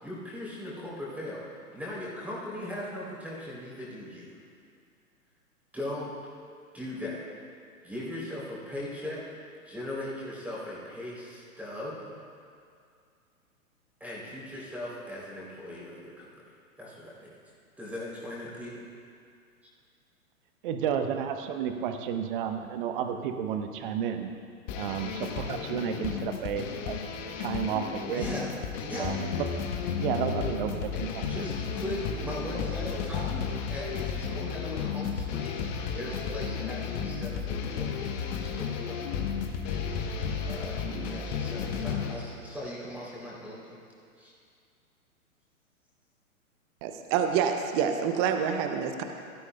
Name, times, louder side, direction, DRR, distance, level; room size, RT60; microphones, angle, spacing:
voice 1, 0.0-1.4 1.7-4.4 5.7-6.1 6.7-7.3 7.8-9.3 9.6-12.1 14.0-17.4 17.8-18.8 28.1-28.5 28.8-29.4 31.2-43.8 44.2-44.3, left 1 dB, 5° right, -7 dB, 3.1 m, -39 dB
voice 2, 20.6-24.3 24.7-27.0 27.4-28.3 28.9-29.5 30.0-31.2, right 8 dB, 35° right, 6 dB, 1.0 m, -32 dB
sound 1, 24.7-42.1, left 6 dB, 30° left, 1.0 m, -33 dB
voice 3, 46.8-49.0, right 7 dB, 20° right, 6 dB, 0.5 m, -27 dB
17.5 x 13.0 x 2.2 m, 2.3 s
figure-of-eight pair, 115°, 43 cm